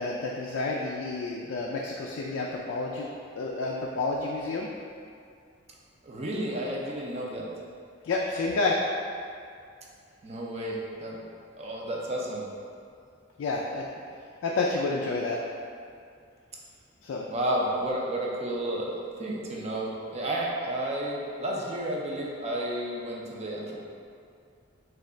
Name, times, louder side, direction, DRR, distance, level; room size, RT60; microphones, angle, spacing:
voice 1, 0.0-3.1 3.4-4.7 8.0-8.8 13.4-13.9 14.4-15.4 17.0-17.3, left 3 dB, 75° left, -3 dB, 0.3 m, -29 dB
voice 2, 6.0-7.5 10.2-11.2 11.6-12.5 17.3-23.8, right 1 dB, 35° right, -3 dB, 0.5 m, -31 dB
3.2 x 2.3 x 3.7 m, 2.3 s
head